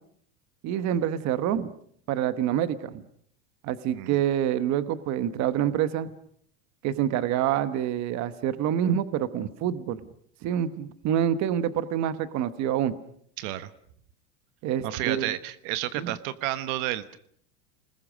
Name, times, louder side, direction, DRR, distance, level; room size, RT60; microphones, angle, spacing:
voice 1, 0.6-1.7 2.1-3.1 3.6-6.1 6.8-10.0 10.4-12.9 14.6-15.3 15.9-16.1, right 10 dB, 40° right, 14 dB, 1.2 m, -27 dB
voice 2, 13.4-13.7 14.8-17.2, right 14 dB, 60° right, 14 dB, 1.2 m, -31 dB
29.0 x 20.5 x 6.3 m, 0.64 s
supercardioid pair, 145°, 43 cm